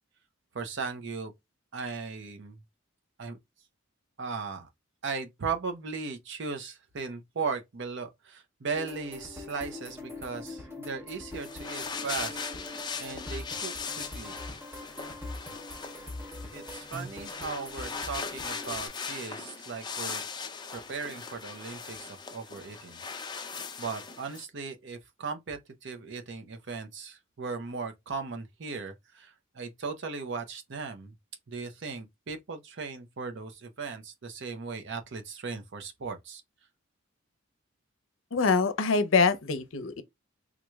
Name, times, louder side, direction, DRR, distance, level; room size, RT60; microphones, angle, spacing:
voice 1, 0.5-1.3 1.7-2.6 3.2-3.4 4.2-4.7 5.0-12.4 13.0-14.4 16.5-20.2 20.7-23.0 23.8-31.2 31.5-36.4, right 4 dB, 65° right, 0.7 m, -37 dB
sound 1, 8.7-18.9, left 2 dB, 15° right, 0.8 m, -43 dB
sound 2, 11.3-24.4, left 5 dB, 20° left, 0.4 m, -39 dB
voice 2, 38.3-40.0, left 4 dB, 80° left, 0.6 m, -24 dB
3.7 x 3.1 x 2.3 m
head